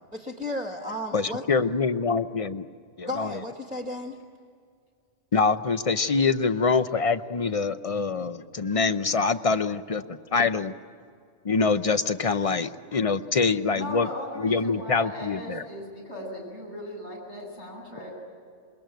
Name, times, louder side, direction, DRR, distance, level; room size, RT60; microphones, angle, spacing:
voice 1, 0.1-1.4 3.0-4.2, left 1 dB, 5° right, 2 dB, 1.8 m, -33 dB
voice 2, 1.1-2.7 3.0-3.4 5.3-10.7 11.4-14.1 14.4-15.6, left 4 dB, 35° left, 11 dB, 0.7 m, -25 dB
voice 3, 13.7-18.1, left 1 dB, 65° left, -2 dB, 8.5 m, -38 dB
27.5 x 22.0 x 9.2 m, 2.2 s
omnidirectional pair, 1.3 m